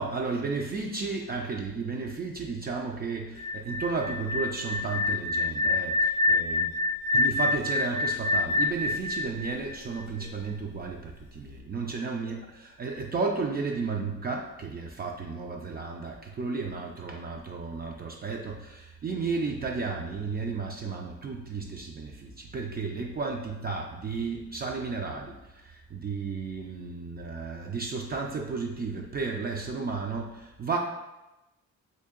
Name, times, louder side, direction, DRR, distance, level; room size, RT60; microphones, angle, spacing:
voice 1, 0.0-6.8 7.1-30.8, right 4 dB, 30° right, 0 dB, 0.4 m, -33 dB
sound 1, 3.4-10.3, left 2 dB, 75° left, 0.5 m, -27 dB
2.7 x 2.7 x 3.7 m, 0.96 s
cardioid pair, 90°, 30 cm